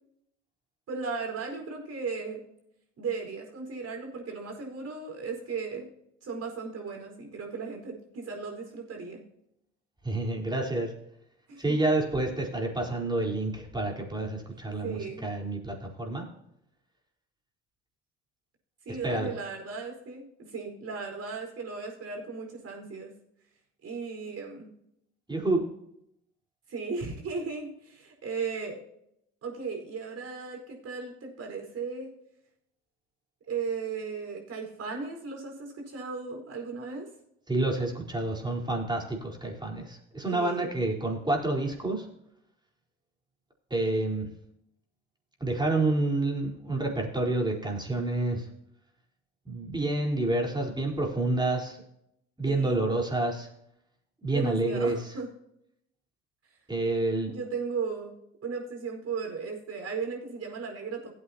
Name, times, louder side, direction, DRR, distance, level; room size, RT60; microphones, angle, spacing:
voice 1, 0.9-2.4 3.0-5.9 6.2-9.2 11.5-11.8 14.8-15.3 18.8-23.1 23.8-24.7 26.7-28.8 29.4-32.1 33.5-37.1 40.3-40.7 52.5-52.9 54.3-55.3 57.3-58.2 58.4-61.1, right 5 dB, 50° right, 2 dB, 4.8 m, -36 dB
voice 2, 10.0-10.9 11.6-16.3 19.0-19.3 25.3-25.6 37.5-42.1 43.7-44.3 45.4-48.5 49.4-51.8 52.4-53.5 54.2-55.1 56.7-57.3, right 2 dB, 15° right, -1 dB, 4.3 m, -28 dB
17.0 x 8.6 x 2.9 m, 0.76 s
hypercardioid pair, 60°, 32 cm